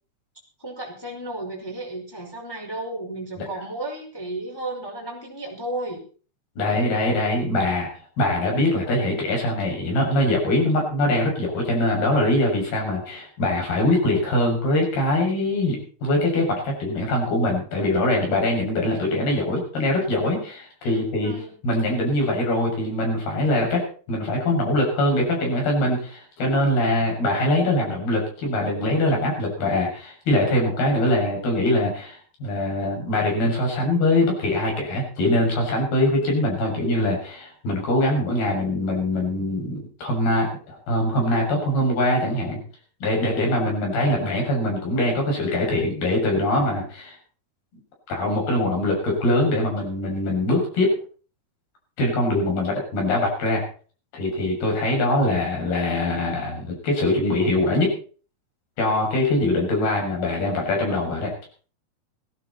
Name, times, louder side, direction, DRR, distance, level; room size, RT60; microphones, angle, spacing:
voice 1, 0.6-6.0 20.8-21.6, right 1 dB, 5° left, -1 dB, 4.4 m, -33 dB
voice 2, 6.6-7.9 8.2-21.3 21.6-23.8 24.1-42.6 43.0-47.2 48.1-50.9 52.0-53.6 54.1-57.9 58.8-61.3, left 1 dB, 85° left, 0 dB, 8.7 m, -23 dB
18.0 x 15.0 x 4.3 m, 0.41 s
omnidirectional pair, 4.3 m